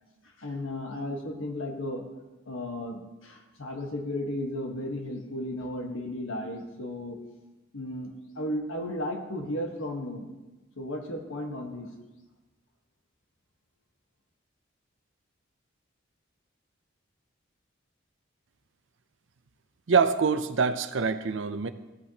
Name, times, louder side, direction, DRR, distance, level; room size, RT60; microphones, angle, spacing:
voice 1, 0.4-2.0 2.5-7.2 7.7-10.3 10.8-11.9, left 1 dB, 80° left, 2 dB, 1.4 m, -34 dB
voice 2, 19.9-21.7, right 5 dB, 65° right, 11 dB, 0.5 m, -25 dB
14.5 x 8.4 x 2.9 m, 1.1 s
head